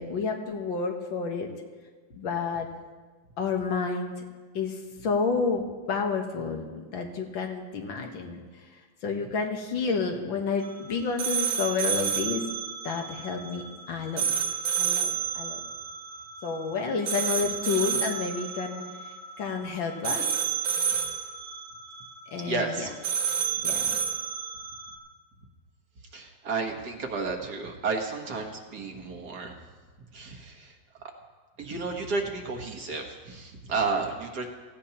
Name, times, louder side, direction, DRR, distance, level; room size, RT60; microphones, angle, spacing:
voice 1, 0.0-1.5 2.1-2.7 3.4-4.1 4.6-4.7 5.0-8.4 9.0-12.5 12.8-14.3 14.8-15.6 16.4-18.9 19.4-20.3 22.3-22.9 23.6-24.0, left 5 dB, 85° left, 3 dB, 2.0 m, -30 dB
sound 1, 10.6-25.0, right 7 dB, 80° right, 1.9 m, -31 dB
voice 2, 22.4-22.9 26.1-29.5 30.1-30.7 31.6-34.5, right 4 dB, 60° right, 2 dB, 1.8 m, -32 dB
17.5 x 15.5 x 2.9 m, 1.4 s
omnidirectional pair, 2.1 m